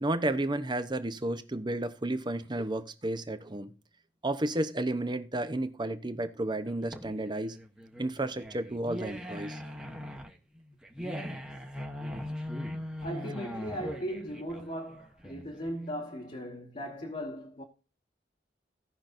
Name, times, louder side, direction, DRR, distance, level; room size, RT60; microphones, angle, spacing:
voice 1, 0.0-3.7 4.2-7.6 8.0-9.6, right 1 dB, 25° right, 0.8 m, -32 dB
sound 1, 6.6-15.7, equal, 5° right, 1.1 m, -40 dB
voice 2, 13.0-17.6, equal, 40° left, 1.4 m, -38 dB
17.0 x 5.9 x 2.6 m
head